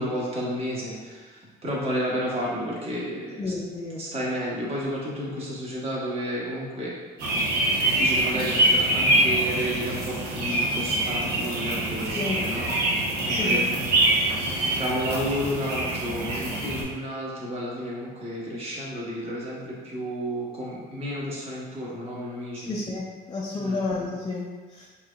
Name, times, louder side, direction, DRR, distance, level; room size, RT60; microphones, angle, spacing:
voice 1, 0.0-3.5 4.0-6.9 7.7-12.7 13.2-13.7 14.7-22.8 23.5-23.8, equal, 35° right, -5 dB, 1.2 m, -31 dB
voice 2, 3.4-4.0 12.1-12.4 13.3-13.7 22.5-24.9, left 3 dB, 25° left, -4 dB, 0.5 m, -31 dB
sound 1, 7.2-16.8, right 1 dB, 70° right, 1.0 m, -24 dB
4.6 x 3.0 x 2.4 m, 1.4 s
cardioid pair, 110°, 17 cm